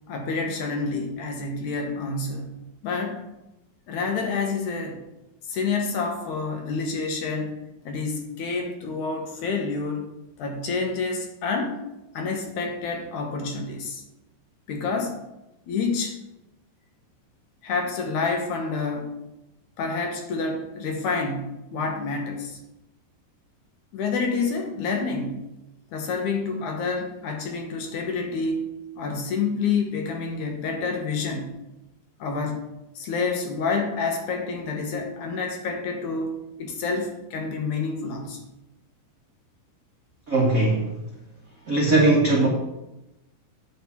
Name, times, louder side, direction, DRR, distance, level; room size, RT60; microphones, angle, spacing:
voice 1, 0.0-2.6 2.8-3.2 3.9-5.0 5.5-10.1 10.4-11.8 12.1-14.0 14.7-15.2 15.7-16.2 17.6-19.1 19.8-22.6 23.9-25.5 25.9-28.7 29.0-31.5 32.2-32.6 33.0-38.4, left 4 dB, 70° left, 2 dB, 2.5 m, -28 dB
voice 2, 40.3-40.9 41.7-42.5, right 2 dB, 65° right, -4 dB, 0.8 m, -19 dB
8.6 x 4.3 x 7.0 m, 0.94 s
omnidirectional pair, 3.8 m